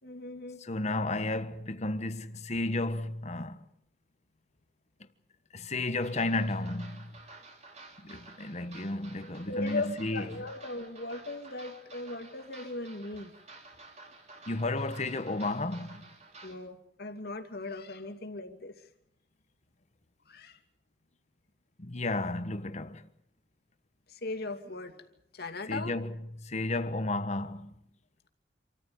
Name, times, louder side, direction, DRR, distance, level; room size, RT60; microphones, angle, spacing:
voice 1, 0.0-0.6 9.5-13.3 16.4-18.9 20.3-20.6 24.1-24.9 25.3-26.0, left 2 dB, 60° left, 2.5 m, -38 dB
voice 2, 0.6-3.6 5.5-7.2 8.0-10.3 14.5-16.1 21.8-23.1 25.7-26.1 26.4-27.8, left 2 dB, 40° left, 1.4 m, -33 dB
sound 1, 6.0-16.6, right 3 dB, 40° right, 3.4 m, -52 dB
27.0 x 14.5 x 9.5 m
head